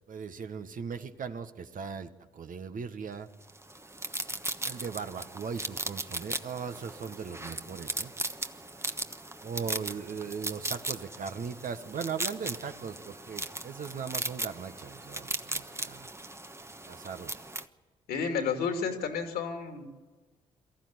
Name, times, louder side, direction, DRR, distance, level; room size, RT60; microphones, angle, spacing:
voice 1, 0.1-3.3 4.6-8.1 9.4-16.1 16.9-17.3, right 6 dB, 55° right, 8 dB, 1.4 m, -38 dB
sound 1, 3.5-17.7, right 2 dB, 15° right, 1.2 m, -38 dB
voice 2, 18.1-19.9, left 6 dB, 75° left, 4 dB, 2.7 m, -31 dB
23.0 x 14.5 x 9.7 m, 1.4 s
hypercardioid pair, 45°, 16 cm